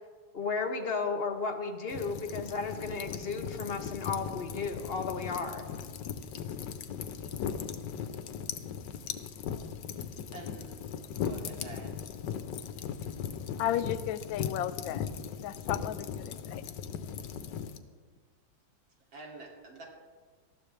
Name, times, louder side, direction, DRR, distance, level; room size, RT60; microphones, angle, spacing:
voice 1, 0.3-5.7, left 4 dB, 40° left, 5 dB, 1.0 m, -34 dB
sound 1, 1.9-17.8, left 7 dB, 75° left, 1.4 m, -38 dB
voice 2, 10.3-10.7 11.1-11.9 16.9-17.0 19.1-19.8, right 2 dB, 80° right, -2 dB, 3.5 m, -47 dB
voice 3, 13.6-15.1 15.4-16.6, left 11 dB, 90° left, 14 dB, 1.4 m, -34 dB
19.0 x 13.5 x 3.4 m, 1.5 s
omnidirectional pair, 2.1 m